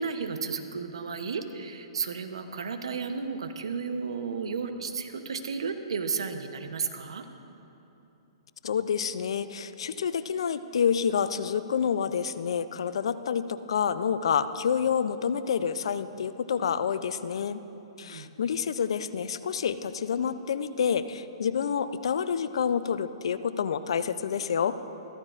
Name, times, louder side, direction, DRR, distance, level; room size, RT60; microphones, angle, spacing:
voice 1, 0.0-7.3 18.0-18.4, right 5 dB, 75° right, 8 dB, 0.8 m, -33 dB
voice 2, 8.6-17.6 18.0-24.7, left 7 dB, 70° left, 13 dB, 0.4 m, -28 dB
14.0 x 14.0 x 2.5 m, 3.0 s
hypercardioid pair, 120°, 3 cm